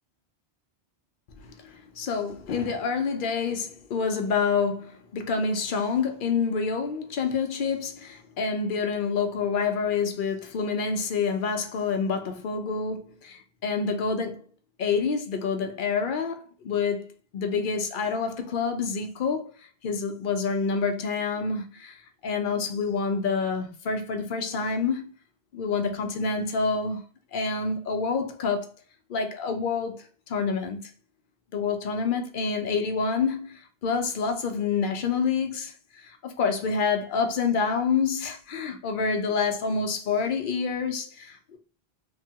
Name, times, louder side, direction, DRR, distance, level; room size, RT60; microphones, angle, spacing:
voice 1, 1.4-14.5 14.8-19.5 19.8-25.1 25.5-27.0 27.3-28.7 29.1-30.8 31.5-41.6, left 5 dB, 60° left, 0.6 m, -27 dB
3.3 x 2.2 x 2.7 m
omnidirectional pair, 1.1 m